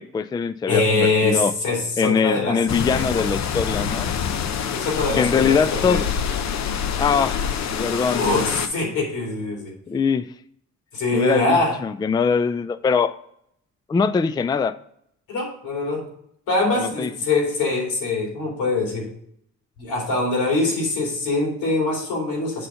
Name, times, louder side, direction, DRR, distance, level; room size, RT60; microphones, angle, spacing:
voice 1, 0.0-1.5 2.0-4.1 5.2-6.1 7.0-8.2 9.9-10.3 11.1-13.2 13.9-14.8 16.8-17.1, left 5 dB, 15° left, 15 dB, 0.3 m, -22 dB
voice 2, 0.7-2.6 2.9-3.2 4.7-6.0 8.1-9.7 10.9-11.8 15.3-16.1 16.5-19.1 19.8-22.7, left 3 dB, 90° left, -1 dB, 3.0 m, -23 dB
Wind Realistic A, 2.7-8.7, left 7 dB, 65° left, 0.8 m, -26 dB
7.8 x 4.2 x 5.5 m, 0.70 s
cardioid pair, 90°, 30 cm